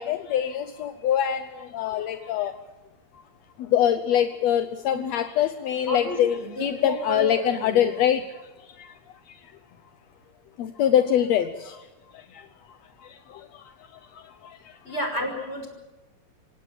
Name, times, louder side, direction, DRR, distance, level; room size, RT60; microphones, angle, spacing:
voice 1, 0.0-2.5 3.6-8.4 8.8-8.9 10.6-11.9 12.1-12.5 13.0-13.7 14.1-14.8, left 10 dB, 70° left, 9 dB, 1.7 m, -25 dB
voice 2, 5.9-7.9 14.8-15.7, equal, 15° left, 3 dB, 6.0 m, -31 dB
27.5 x 17.0 x 7.5 m, 1.1 s
omnidirectional pair, 4.0 m